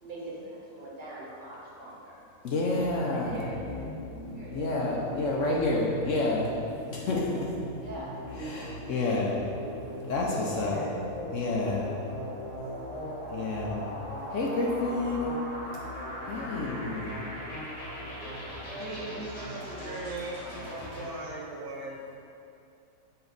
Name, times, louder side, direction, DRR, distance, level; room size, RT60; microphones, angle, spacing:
voice 1, 0.0-2.2 2.7-3.9 4.3-4.7 5.0-5.6 7.7-8.1 10.4-10.8 11.6-12.0 13.4-13.8 18.1-18.9, right 1 dB, 35° right, -6 dB, 1.2 m, -44 dB
voice 2, 2.4-3.5 4.5-6.5 6.9-7.5 8.4-9.4 10.1-10.8 11.3-11.9 13.3-13.8 14.3-15.3 16.3-17.2, left 2 dB, 60° left, -3 dB, 0.9 m, -29 dB
sound 1, 2.8-21.1, equal, 80° left, 2.1 m, -39 dB
voice 3, 18.7-20.4 20.7-22.2, right 2 dB, 75° right, -2 dB, 1.4 m, -39 dB
7.0 x 4.3 x 3.9 m, 2.5 s
omnidirectional pair, 1.7 m